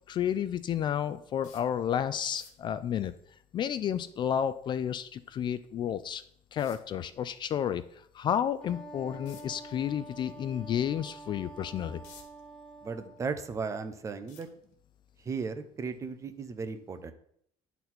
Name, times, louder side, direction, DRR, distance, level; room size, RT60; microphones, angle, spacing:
voice 1, 0.1-3.1 3.5-6.2 6.5-12.0, left 9 dB, 40° left, 14 dB, 0.3 m, -31 dB
sound 1, 1.4-1.8 2.2-2.7 5.4-5.5 6.6-7.0 9.2-9.6 10.1-10.3 10.8-10.9 11.6-12.5 12.9-13.6 14.3-15.0 15.9-16.1 16.4-16.5, left 7 dB, 80° left, 1.5 m, -54 dB
Wind instrument woodwind instrument, 8.6-13.2, right 2 dB, 5° left, 1.0 m, -47 dB
voice 2, 12.8-14.5 15.2-17.1, right 5 dB, 25° right, 9 dB, 0.7 m, -36 dB
10.5 x 4.1 x 4.3 m, 0.67 s
cardioid pair, 140°, 13 cm